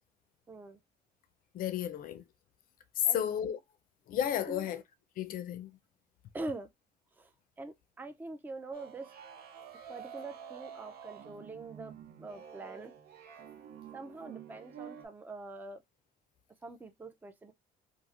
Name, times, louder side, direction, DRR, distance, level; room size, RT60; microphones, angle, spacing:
voice 1, 0.5-0.8 3.0-3.2 4.5-4.8 6.3-6.7 7.1-7.3 7.6-9.1 9.9-12.9 13.9-15.8 16.6-17.5, right 2 dB, 10° right, 0.4 m, -44 dB
voice 2, 1.5-2.2 3.0-3.6 4.1-4.8 5.2-5.7, left 10 dB, 55° left, 0.4 m, -32 dB
sound 1, 8.7-15.1, right 8 dB, 70° right, 0.6 m, -49 dB
3.0 x 2.4 x 2.4 m
cardioid pair, 110°, 17 cm